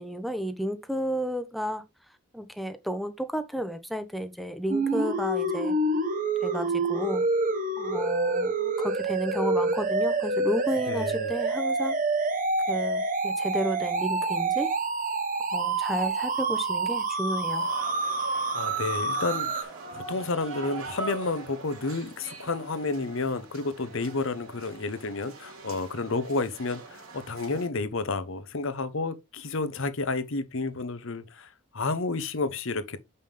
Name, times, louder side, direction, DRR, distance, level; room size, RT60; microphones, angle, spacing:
voice 1, 0.0-1.8 2.3-5.7 6.4-7.3 7.8-12.0 12.7-14.7 15.5-17.7, equal, ahead, 0.8 m, -32 dB
sound 1, 4.7-19.6, right 3 dB, 40° right, 1.0 m, -27 dB
voice 2, 10.9-11.3 18.5-33.0, left 3 dB, 60° left, 0.8 m, -31 dB
sound 2, 17.5-27.7, right 4 dB, 65° right, 2.7 m, -43 dB
7.3 x 5.5 x 3.3 m
head